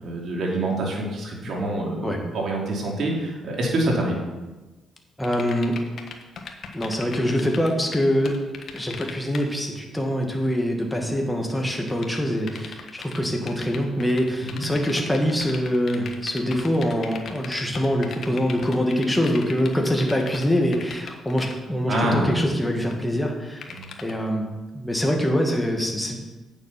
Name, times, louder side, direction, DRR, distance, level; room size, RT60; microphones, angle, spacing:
voice 1, 0.0-4.2 14.5-14.6 21.9-22.4 23.7-23.9, right 1 dB, 60° right, -2 dB, 3.0 m, -26 dB
sound 1, 5.2-9.4 11.9-20.5 20.7-21.5 22.8-22.9 23.6-24.1, left 6 dB, 55° left, 1.3 m, -38 dB
voice 2, 5.2-5.8 6.7-8.3 8.7-23.7 24.0-24.4 24.7-26.2, equal, 5° left, 1 dB, 1.9 m, -24 dB
8.8 x 7.1 x 5.9 m, 1.2 s
cardioid pair, 90°, 0 cm